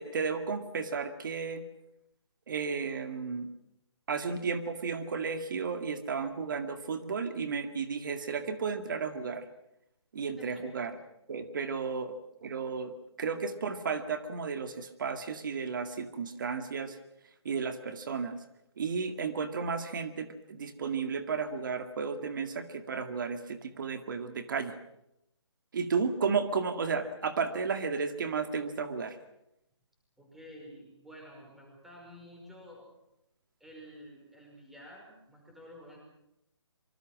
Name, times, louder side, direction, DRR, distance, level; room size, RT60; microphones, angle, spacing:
voice 1, 0.0-1.6 2.5-3.5 4.1-9.5 10.1-11.0 11.3-17.0 17.5-18.4 18.8-24.7 25.7-29.2, right 5 dB, 45° right, 8 dB, 2.0 m, -33 dB
voice 2, 10.4-10.8 30.2-32.9 33.6-36.0, equal, ahead, -1 dB, 5.5 m, -51 dB
26.0 x 24.5 x 6.3 m, 0.83 s
hypercardioid pair, 160°, 15 cm